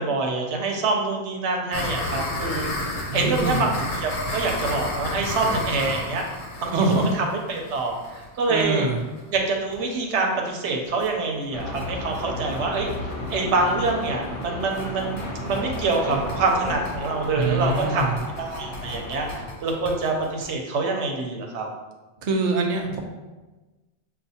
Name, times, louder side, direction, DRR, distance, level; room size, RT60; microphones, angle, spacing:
voice 1, 0.0-2.7 3.1-3.7 4.0-6.2 6.6-6.7 7.5-8.9 9.3-12.9 13.3-18.1 18.4-21.7, right 3 dB, 85° right, 1 dB, 1.0 m, -25 dB
sound 1, 1.7-9.4 9.7-9.8 10.1-10.2 10.5-10.6 10.8-11.1 11.4-20.5, left 2 dB, 85° left, 1.0 m, -33 dB
voice 2, 3.1-3.7 6.7-7.1 8.5-9.0 17.3-18.2 22.2-23.0, right 2 dB, 50° right, 2 dB, 0.6 m, -24 dB
sound 2, 11.5-19.5, left 1 dB, 50° left, 0.9 m, -33 dB
6.6 x 2.3 x 2.7 m, 1.2 s
omnidirectional pair, 1.1 m